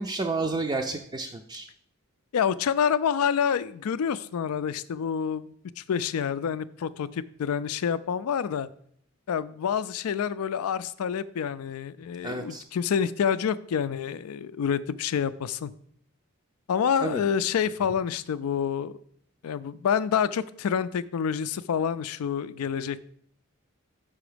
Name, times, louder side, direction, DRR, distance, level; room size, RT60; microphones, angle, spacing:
voice 1, 0.0-1.7 12.2-12.6 17.0-17.2, right 3 dB, 20° right, 2 dB, 0.4 m, -30 dB
voice 2, 2.3-8.7 9.3-15.7 16.7-18.9 19.4-23.1, left 7 dB, 85° left, 16 dB, 0.4 m, -28 dB
6.1 x 5.6 x 5.0 m, 0.66 s
head